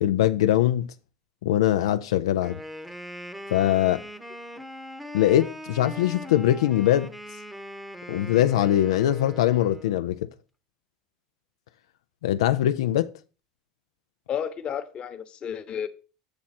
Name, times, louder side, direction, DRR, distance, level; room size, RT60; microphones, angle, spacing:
voice 1, 0.0-0.9 1.4-2.6 3.5-4.0 5.1-7.1 8.1-10.3 12.2-13.1, left 12 dB, 90° left, 0.4 m, -22 dB
Wind instrument woodwind instrument, 2.3-10.1, equal, ahead, 0.9 m, -40 dB
voice 2, 14.3-15.9, left 8 dB, 40° left, 1.0 m, -32 dB
7.2 x 6.3 x 4.2 m
supercardioid pair, 100°, 3 cm